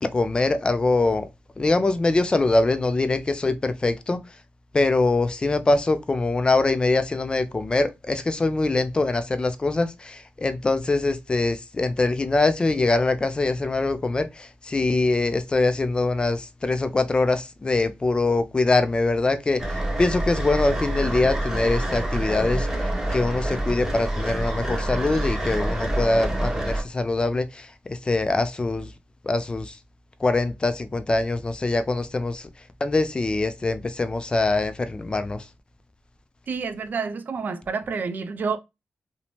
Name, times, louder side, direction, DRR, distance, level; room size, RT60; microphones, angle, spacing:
voice 1, 0.0-1.3 1.6-4.2 4.7-28.9 29.2-29.8 30.2-32.5 32.8-35.5, left 2 dB, 25° left, 0.4 m, -23 dB
sound 1, 19.6-26.8, right 1 dB, 10° right, 0.9 m, -27 dB
voice 2, 36.5-38.6, right 5 dB, 50° right, 0.4 m, -29 dB
2.6 x 2.1 x 3.0 m
wide cardioid pair, 110°, 4 cm